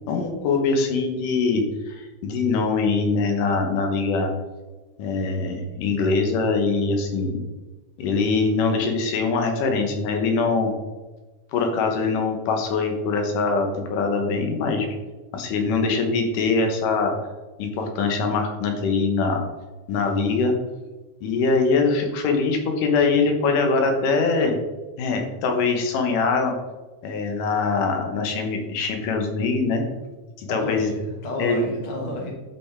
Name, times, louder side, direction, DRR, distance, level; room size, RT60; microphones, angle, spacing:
voice 1, 0.1-4.3 5.0-7.4 8.0-10.7 11.5-15.0 15.3-17.3 17.6-19.4 19.9-20.5 21.2-24.6 25.0-26.5 27.0-29.8 30.4-30.9 31.4-31.7, left 4 dB, 85° left, 3 dB, 2.7 m, -23 dB
voice 2, 30.5-32.3, left 1 dB, 35° left, -1 dB, 0.6 m, -30 dB
10.5 x 5.6 x 3.5 m, 1.2 s
omnidirectional pair, 3.7 m